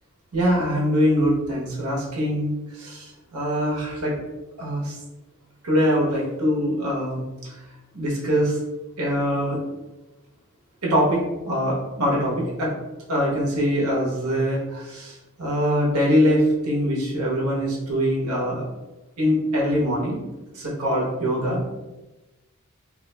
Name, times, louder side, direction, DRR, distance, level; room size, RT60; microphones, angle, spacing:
voice 1, 0.3-4.2 4.6-5.0 5.6-7.6 7.9-8.6 9.0-9.6 10.8-11.2 11.4-12.7 13.1-18.6 19.2-20.3 20.5-21.6, equal, 90° right, -4 dB, 0.9 m, -23 dB
2.5 x 2.2 x 3.8 m, 1.1 s
head